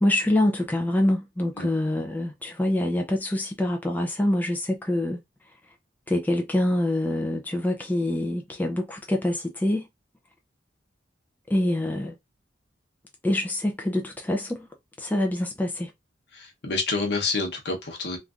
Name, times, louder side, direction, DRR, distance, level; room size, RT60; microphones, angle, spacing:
voice 1, 0.0-5.2 6.1-9.9 11.5-12.1 13.2-14.7 15.0-15.9, left 1 dB, 10° left, 0.4 m, -25 dB
voice 2, 16.3-18.2, left 3 dB, 65° left, 0.9 m, -28 dB
3.2 x 2.5 x 2.4 m
head